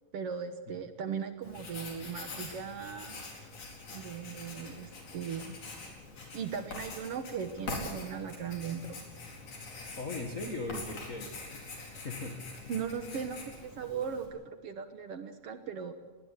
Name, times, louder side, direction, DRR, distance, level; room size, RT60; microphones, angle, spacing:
voice 1, 0.1-3.2 3.9-5.6 6.3-9.0 12.7-15.9, right 7 dB, 60° right, 8 dB, 2.0 m, -38 dB
Writing, 1.4-14.3, left 3 dB, 85° left, 5.9 m, -44 dB
voice 2, 10.0-12.4, left 2 dB, 35° left, 3 dB, 1.4 m, -39 dB
21.0 x 20.0 x 8.2 m, 1.3 s
omnidirectional pair, 3.4 m